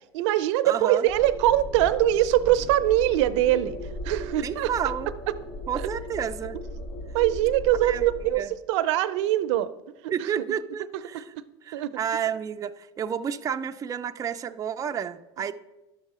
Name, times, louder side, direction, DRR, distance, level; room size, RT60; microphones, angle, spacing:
voice 1, 0.1-3.8 4.0-4.7 5.7-5.9 7.1-8.4 8.7-9.7 10.0-10.3 11.1-11.2 11.7-11.9, right 13 dB, 75° right, 14 dB, 0.6 m, -22 dB
voice 2, 0.6-1.1 4.4-5.1 5.7-6.6 7.8-8.0 8.4-8.5 10.1-11.3 11.7-15.5, right 8 dB, 25° right, 7 dB, 0.4 m, -30 dB
sound 1, 1.1-8.3, left 1 dB, 60° left, 2.5 m, -37 dB
11.0 x 6.5 x 4.9 m, 1.0 s
supercardioid pair, 110°, 15 cm